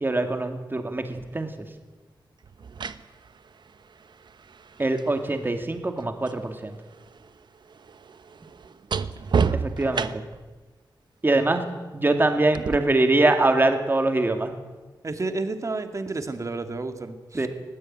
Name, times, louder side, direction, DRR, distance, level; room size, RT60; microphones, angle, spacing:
voice 1, 0.0-1.5 4.8-6.8 9.6-10.1 11.2-11.6 11.9-14.5 17.3-17.5, right 2 dB, 25° right, 6 dB, 2.4 m, -23 dB
sound 1, 1.2-1.3 2.4-6.5 6.7-10.5 12.5-12.8, right 6 dB, 75° right, 1.0 m, -31 dB
voice 2, 15.0-17.5, right 3 dB, 45° right, 7 dB, 2.2 m, -31 dB
20.5 x 18.0 x 9.0 m, 1.2 s
wide cardioid pair, 105°, 8 cm